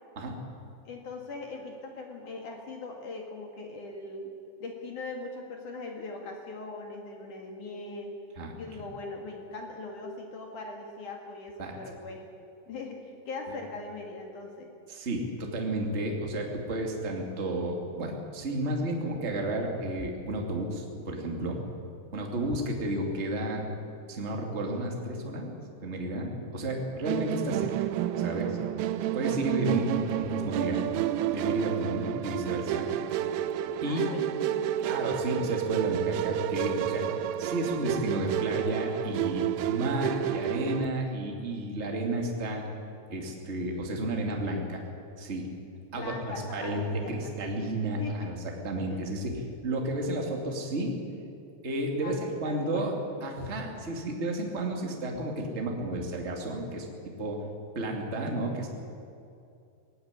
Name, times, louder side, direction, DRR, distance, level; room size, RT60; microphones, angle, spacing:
voice 1, 0.9-4.3 4.6-8.2 8.5-12.3 12.7-14.7 29.7-30.1 33.8-34.8 45.9-47.6 48.0-48.3 48.9-49.0 52.0-52.9, left 3 dB, 55° left, 2 dB, 2.6 m, -40 dB
voice 2, 14.9-21.6 22.1-23.6 24.1-25.5 25.8-27.9 28.2-28.6 29.1-30.8 31.3-32.9 33.8-34.0 34.8-37.0 37.4-42.6 43.1-44.8 45.2-45.5 45.9-48.3 48.6-51.0 51.6-52.9 53.2-56.9 57.2-57.4 57.7-58.7, right 1 dB, 25° right, 1 dB, 1.4 m, -32 dB
Musical instrument, 27.1-40.9, right 11 dB, 85° right, 3.3 m, -30 dB
19.0 x 16.0 x 9.8 m, 2.5 s
omnidirectional pair, 5.6 m